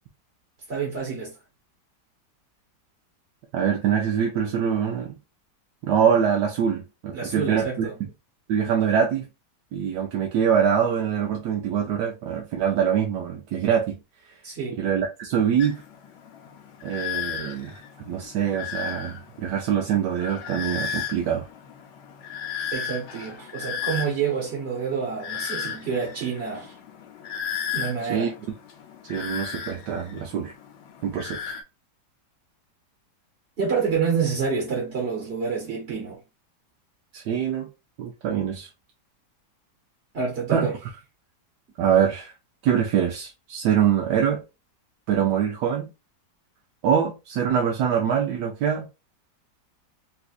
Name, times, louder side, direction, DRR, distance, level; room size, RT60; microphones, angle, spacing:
voice 1, 0.7-1.3 7.1-7.9 14.4-14.8 22.7-26.7 27.7-28.3 33.6-36.2 40.1-40.8, right 6 dB, 40° right, 1.1 m, -28 dB
voice 2, 3.5-5.2 5.8-7.9 8.5-9.3 9.7-14.0 14.8-15.8 16.8-21.5 28.1-28.5 29.0-30.5 31.0-31.4 37.1-37.7 38.0-38.7 40.5-40.7 41.8-42.3 42.6-44.4 45.1-45.9 46.8-49.1, right 8 dB, 80° right, 1.2 m, -24 dB
sound 1, 15.6-31.6, left 7 dB, 90° left, 1.3 m, -35 dB
4.1 x 2.4 x 2.4 m
omnidirectional pair, 1.9 m